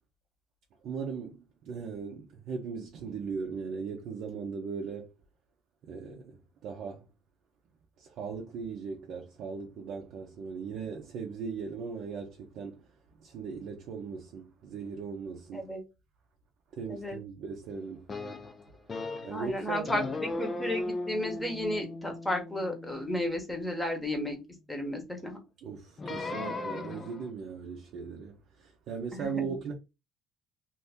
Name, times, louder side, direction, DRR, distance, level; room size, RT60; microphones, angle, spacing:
voice 1, 0.8-5.1 5.8-6.4 6.6-7.0 8.0-12.8 13.2-15.7 16.8-18.1 19.2-20.1 25.6-29.7, right 5 dB, 55° right, 0.7 m, -38 dB
sound 1, 18.1-19.5 19.9-24.2 26.0-27.3, left 2 dB, 25° left, 0.4 m, -37 dB
voice 2, 19.3-24.4 24.7-25.4 29.1-29.5, left 1 dB, 5° left, 1.0 m, -33 dB
2.8 x 2.7 x 3.4 m
cardioid pair, 140°, 0 cm